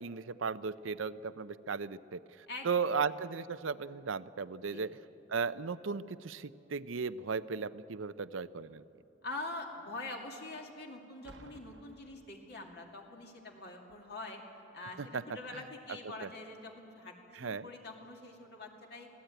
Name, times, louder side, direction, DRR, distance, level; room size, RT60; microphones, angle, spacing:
voice 1, 0.0-5.0 5.3-8.8 15.1-15.2 15.5-15.6 16.2-16.3 17.3-17.7, right 5 dB, 85° right, 14 dB, 0.6 m, -36 dB
voice 2, 2.5-3.0 4.7-4.8 9.2-14.4 14.7-19.1, left 2 dB, 55° left, 1 dB, 2.5 m, -45 dB
Boom, 11.2-13.0 13.9-14.1, right 2 dB, 60° right, 1.1 m, -57 dB
25.0 x 17.0 x 9.1 m, 2.9 s
head